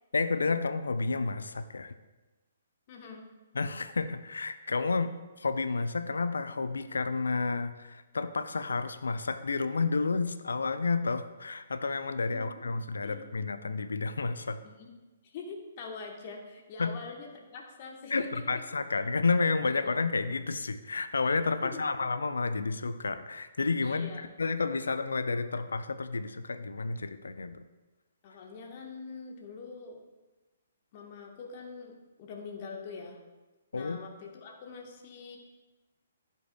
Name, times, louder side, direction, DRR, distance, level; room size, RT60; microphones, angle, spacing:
voice 1, 0.1-1.9 3.5-14.6 16.8-17.0 18.1-24.1 24.4-27.6 33.7-34.0, left 4 dB, 70° left, 11 dB, 0.5 m, -30 dB
voice 2, 2.9-3.2 12.3-12.7 13.0-13.2 14.6-14.9 15.2-18.6 21.6-21.9 23.8-24.2 28.2-30.0 30.9-33.2 33.7-35.4, left 4 dB, 40° left, 1 dB, 1.3 m, -44 dB
15.0 x 5.5 x 2.3 m, 1.2 s
figure-of-eight pair, 125°, 0 cm